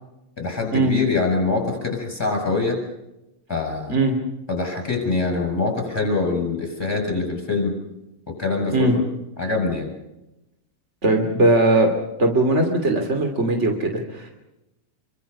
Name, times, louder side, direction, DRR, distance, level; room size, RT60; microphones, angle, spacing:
voice 1, 0.4-2.8 3.5-4.0 4.5-7.7 8.3-9.0 9.4-9.9, left 3 dB, 5° left, 3 dB, 6.5 m, -24 dB
voice 2, 11.0-11.9 12.2-14.3, right 2 dB, 25° right, 4 dB, 1.5 m, -19 dB
27.0 x 25.0 x 5.6 m, 0.93 s
omnidirectional pair, 6.0 m